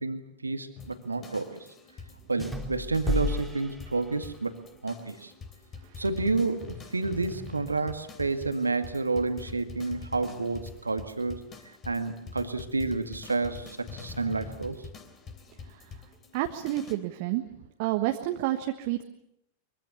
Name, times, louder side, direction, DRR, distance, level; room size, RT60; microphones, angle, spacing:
voice 1, 0.0-1.7 2.3-4.6 4.8-5.3 6.0-14.8, right 3 dB, 80° right, 8 dB, 2.0 m, -30 dB
sound 1, 0.8-16.9, left 5 dB, 25° left, 3.2 m, -45 dB
sound 2, 2.4-4.6, left 1 dB, 5° left, 3.6 m, -33 dB
voice 2, 16.3-17.4 17.8-19.0, right 15 dB, 45° right, 5 dB, 1.4 m, -30 dB
24.5 x 23.5 x 7.2 m, 0.79 s
figure-of-eight pair, 90°, 0 cm